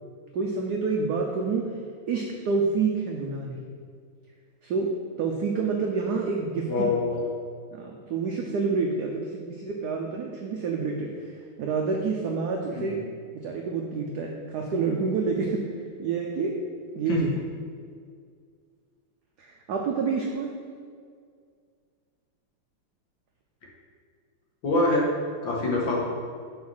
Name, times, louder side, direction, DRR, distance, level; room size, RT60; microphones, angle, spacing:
voice 1, 0.3-1.6 2.1-3.6 4.6-4.9 5.2-6.9 7.7-13.0 13.3-16.6 16.9-17.3 19.4-20.5, right 4 dB, 80° right, 1 dB, 0.9 m, -28 dB
voice 2, 6.7-7.2 12.7-13.0 17.1-17.2 24.6-25.1 25.4-26.0, left 2 dB, 65° left, -3 dB, 1.9 m, -25 dB
5.7 x 4.2 x 6.1 m, 2.1 s
omnidirectional pair, 2.4 m